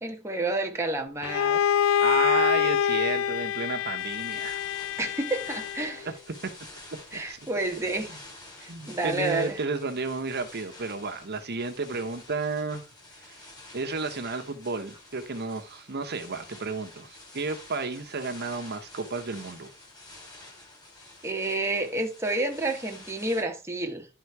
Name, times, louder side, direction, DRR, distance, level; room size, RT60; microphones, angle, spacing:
voice 1, 0.0-1.6 5.0-6.1 7.1-8.1 8.6-9.6 21.2-24.1, right 2 dB, 15° right, 1.1 m, -30 dB
Bowed string instrument, 1.2-6.0, left 8 dB, 65° left, 0.3 m, -26 dB
voice 2, 2.0-4.6 6.0-6.1 6.4-6.5 7.1-7.4 8.1-8.2 8.7-12.8 13.7-19.7, right 4 dB, 50° right, 1.0 m, -32 dB
sound 1, 4.0-23.4, left 2 dB, 20° left, 3.4 m, -48 dB
11.0 x 3.8 x 4.7 m
head